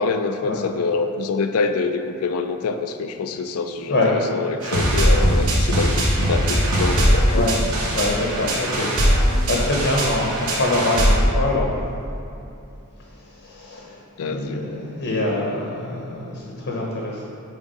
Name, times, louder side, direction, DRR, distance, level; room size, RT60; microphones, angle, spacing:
voice 1, 0.0-7.5 14.2-14.6, left 4 dB, 70° left, 8 dB, 0.4 m, -25 dB
sound 1, 4.6-11.2, equal, 75° right, 1.2 m, -20 dB
voice 2, 7.3-11.7 13.3-17.3, left 2 dB, 55° left, -3 dB, 0.8 m, -25 dB
6.3 x 3.6 x 5.4 m, 2.7 s
head